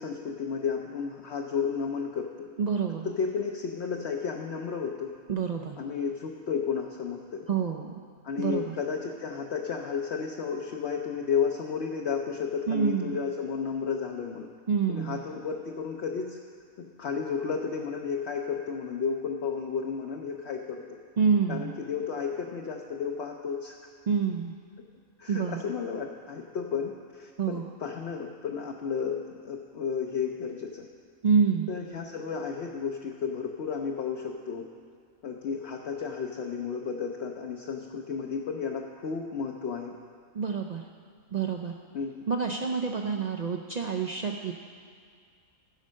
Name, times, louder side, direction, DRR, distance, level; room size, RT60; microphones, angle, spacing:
voice 1, 0.0-2.5 3.2-5.2 5.8-7.5 8.2-14.5 14.9-16.4 16.8-21.0 21.5-23.8 25.2-30.9 31.7-34.7 35.2-39.9 41.9-42.3, left 6 dB, 60° left, 1 dB, 0.9 m, -32 dB
voice 2, 2.6-3.1 5.3-5.8 7.5-7.9 8.4-8.8 12.7-13.2 14.7-15.2 21.2-21.7 24.1-24.6 25.3-25.6 27.4-27.6 31.2-31.7 40.3-40.9 41.3-41.8 42.3-44.5, right 6 dB, 70° right, 2 dB, 0.4 m, -27 dB
15.5 x 5.4 x 6.3 m, 2.2 s
omnidirectional pair, 1.4 m